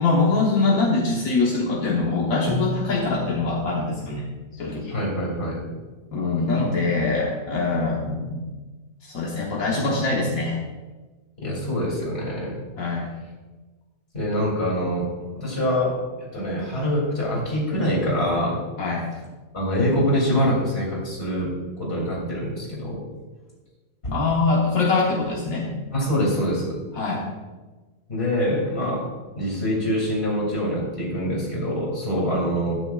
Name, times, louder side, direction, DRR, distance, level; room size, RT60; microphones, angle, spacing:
voice 1, 0.0-4.3 4.5-4.9 6.1-8.5 9.0-10.6 12.8-13.1 18.8-19.1 24.1-25.7 26.9-27.3, left 3 dB, 80° left, -3 dB, 1.6 m, -23 dB
Bowed string instrument, 2.5-5.3, left 2 dB, 10° left, 2.4 m, -35 dB
voice 2, 4.9-5.6 11.4-12.6 14.1-15.1 15.3-18.6 19.5-23.0 24.0-24.1 25.9-26.8 28.1-29.1 29.4-32.8, equal, 45° left, -3 dB, 3.0 m, -25 dB
12.0 x 8.9 x 2.4 m, 1.3 s
omnidirectional pair, 1.4 m